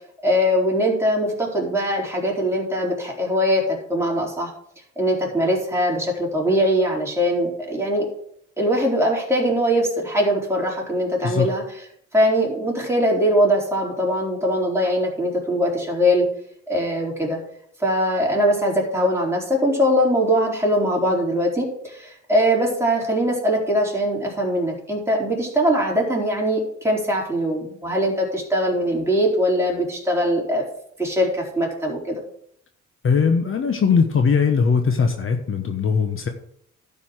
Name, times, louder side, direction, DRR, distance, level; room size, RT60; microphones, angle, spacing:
voice 1, 0.2-4.5 5.0-8.0 8.6-11.6 12.1-16.3 16.7-17.4 17.8-30.6 31.0-32.2, equal, 10° right, -3 dB, 4.3 m, -21 dB
voice 2, 33.0-36.3, left 5 dB, 45° left, 5 dB, 1.2 m, -20 dB
11.5 x 5.5 x 6.4 m, 0.70 s
cardioid pair, 90°, 30 cm